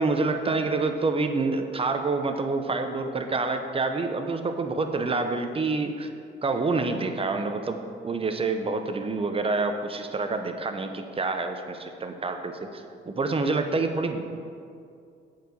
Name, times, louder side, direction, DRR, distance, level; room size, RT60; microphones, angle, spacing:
voice 1, 0.0-6.1 6.4-14.2, right 3 dB, 30° right, 6 dB, 0.8 m, -27 dB
8.0 x 4.9 x 6.9 m, 2.4 s
cardioid pair, 90°, 20 cm